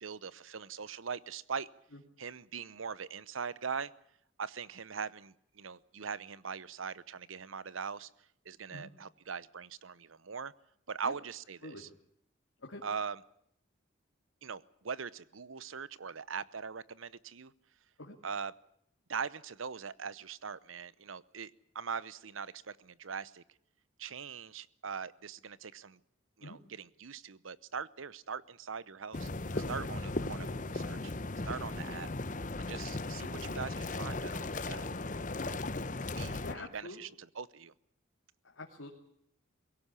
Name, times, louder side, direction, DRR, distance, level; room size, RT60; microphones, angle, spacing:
voice 1, 0.0-1.7 2.2-3.9 4.4-8.1 8.4-10.5 10.9-11.9 12.8-13.2 14.4-17.5 18.2-18.5 19.1-23.4 24.0-26.0 26.4-29.3 29.7-31.1 31.5-32.1 32.6-35.0 35.4-35.6 36.1-37.7, right 6 dB, 90° right, 19 dB, 0.8 m, -41 dB
sound 1, 29.1-36.6, left 2 dB, 40° left, 1.0 m, -37 dB
voice 2, 29.4-29.7 30.4-30.6 36.4-37.0 38.4-38.9, left 2 dB, 90° left, 0 dB, 2.8 m, -46 dB
22.5 x 17.5 x 9.8 m, 0.72 s
head